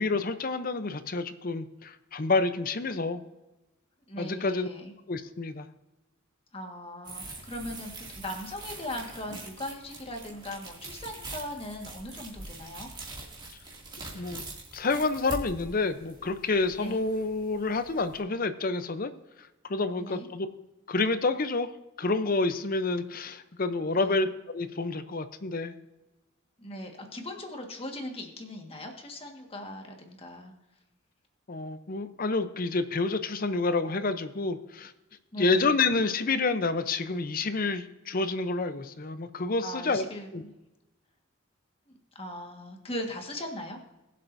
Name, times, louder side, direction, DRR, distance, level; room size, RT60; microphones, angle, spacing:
voice 1, 0.0-3.2 4.2-4.7 5.1-5.7 14.1-14.4 14.7-19.1 19.7-20.5 20.9-21.7 22.0-25.7 31.5-34.9 35.4-40.0 40.3-40.4, left 3 dB, 45° left, 11 dB, 0.7 m, -28 dB
voice 2, 4.1-4.9 6.5-12.9 16.8-17.0 20.0-20.3 24.0-24.3 26.6-30.5 35.3-35.7 39.6-40.3 41.9-43.8, left 1 dB, 30° left, 2 dB, 1.6 m, -39 dB
sound 1, 7.0-18.2, right 2 dB, 20° right, 2.4 m, -44 dB
21.0 x 7.6 x 2.7 m, 1.0 s
head